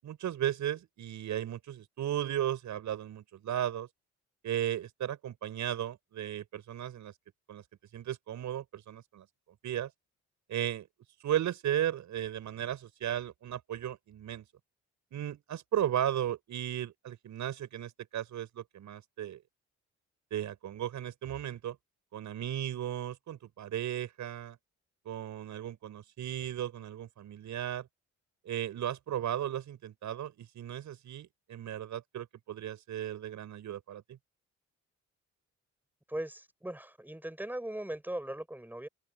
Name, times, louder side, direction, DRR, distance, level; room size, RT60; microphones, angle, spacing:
voice 1, 0.0-3.9 4.4-7.1 7.5-7.6 7.9-9.3 9.6-9.9 10.5-10.9 11.2-14.4 15.1-19.4 20.3-21.8 22.1-24.6 25.0-27.9 28.4-34.2, right 11 dB, 70° right, 7.9 m, -35 dB
voice 2, 36.1-38.9, right 1 dB, 5° right, 7.6 m, -39 dB
cardioid pair, 90°, 30 cm